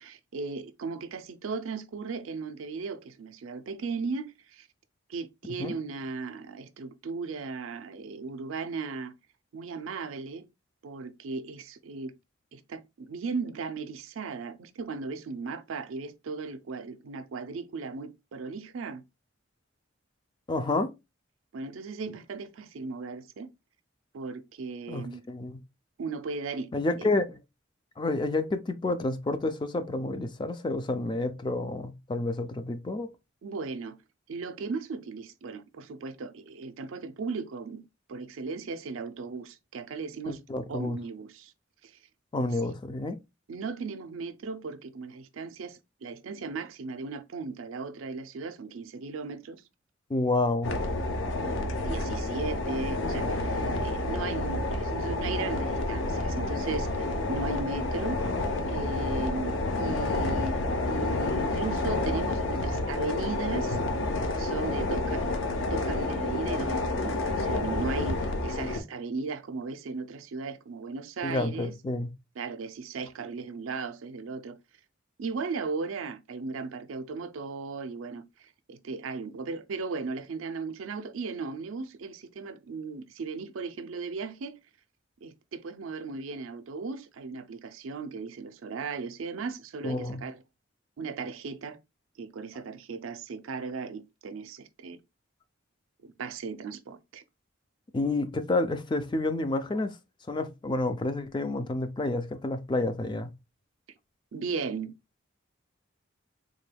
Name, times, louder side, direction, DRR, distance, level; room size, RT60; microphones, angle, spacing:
voice 1, 0.0-4.7 5.1-9.1 9.5-10.4 10.8-12.1 12.5-19.0 21.5-23.5 24.1-25.2 26.0-26.7 27.0-27.1 33.4-34.0 34.3-37.8 38.1-40.4 40.7-41.5 41.8-41.9 43.5-49.6 51.4-58.2 58.7-60.6 60.9-63.8 64.4-71.7 72.4-74.6 75.2-78.2 78.7-84.6 85.2-90.4 91.0-91.8 92.2-95.0 96.0-97.2 104.3-104.9, right 4 dB, 85° right, 0.4 m, -36 dB
voice 2, 20.5-20.9 24.9-25.6 26.7-27.4 28.0-33.1 40.3-41.0 42.3-43.2 50.1-50.7 71.2-72.1 89.8-90.2 97.9-100.0 100.3-103.3, left 2 dB, 25° left, 0.3 m, -29 dB
sound 1, 50.6-68.8, left 2 dB, 70° left, 0.6 m, -29 dB
3.6 x 2.2 x 3.2 m
head